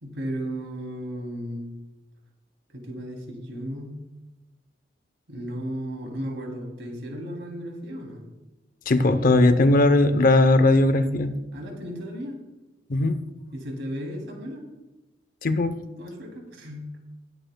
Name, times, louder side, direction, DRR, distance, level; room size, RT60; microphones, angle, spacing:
voice 1, 0.0-1.7 2.7-4.0 5.3-8.2 11.5-12.4 13.5-14.7 16.0-16.9, equal, 75° right, 2 dB, 2.8 m, -35 dB
voice 2, 8.9-11.4 12.9-13.2 15.4-15.8, left 2 dB, 50° left, 11 dB, 0.7 m, -19 dB
20.5 x 9.0 x 2.2 m, 1.1 s
head